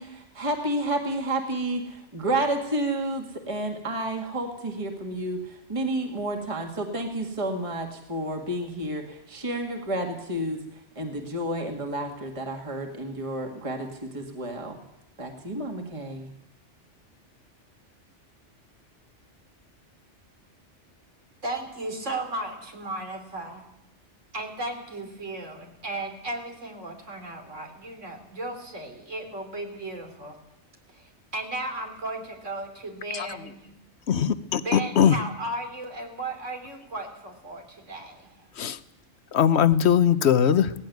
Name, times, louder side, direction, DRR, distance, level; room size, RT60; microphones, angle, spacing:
voice 1, 0.0-14.8 15.2-16.3, right 1 dB, 25° right, 2 dB, 2.0 m, -30 dB
voice 2, 21.4-23.6 24.3-30.4 30.9-33.7 34.6-38.3, right 2 dB, 85° right, 3 dB, 3.6 m, -35 dB
voice 3, 34.1-35.2 38.6-38.8 39.3-40.7, left 8 dB, 65° left, 13 dB, 1.1 m, -20 dB
18.0 x 15.5 x 9.3 m, 0.88 s
omnidirectional pair, 1.2 m